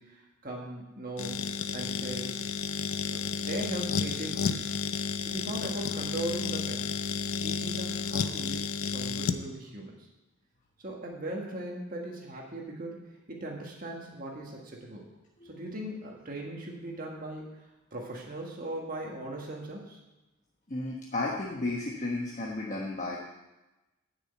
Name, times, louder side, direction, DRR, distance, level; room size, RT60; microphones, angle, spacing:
voice 1, 0.0-1.4 1.7-2.4 3.1-4.7 5.2-6.9 7.4-10.1 10.8-15.1 15.4-20.0, right 1 dB, 40° right, -1 dB, 1.7 m, -39 dB
sound 1, 1.2-9.4, left 5 dB, 75° left, 0.6 m, -32 dB
voice 2, 20.7-23.2, left 2 dB, 35° left, -3 dB, 1.2 m, -33 dB
10.0 x 6.3 x 8.0 m, 1.0 s
head